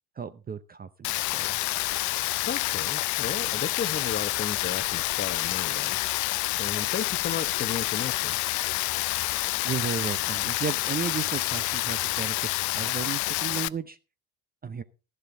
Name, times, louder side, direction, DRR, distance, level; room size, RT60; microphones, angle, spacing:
voice 1, 0.2-1.6 9.6-14.0 14.6-14.8, right 7 dB, 20° right, 0.6 m, -34 dB
Rain, 1.0-13.7, left 18 dB, 45° left, 0.5 m, -28 dB
voice 2, 2.5-6.0 6.6-8.4, left 6 dB, 25° left, 1.0 m, -34 dB
13.0 x 11.0 x 3.8 m
hypercardioid pair, 70°, 43 cm